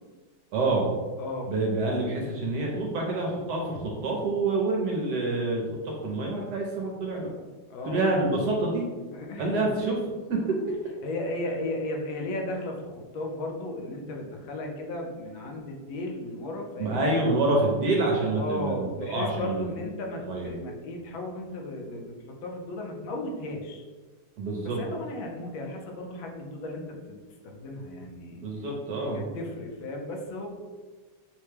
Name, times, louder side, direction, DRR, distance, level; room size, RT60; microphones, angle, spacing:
voice 1, 0.5-0.9 1.5-7.3 7.9-8.9 9.4-10.0 10.3-10.6 16.8-18.8 19.0-19.7 20.3-20.5 24.4-24.8 28.4-29.2, right 2 dB, 65° right, -1 dB, 1.2 m, -27 dB
voice 2, 1.2-1.5 7.7-8.1 9.1-9.7 11.0-17.1 18.4-22.1 22.4-23.8 24.6-28.4 29.1-30.5, left 1 dB, 80° left, 1 dB, 1.5 m, -35 dB
5.9 x 2.2 x 3.3 m, 1.3 s
omnidirectional pair, 2.2 m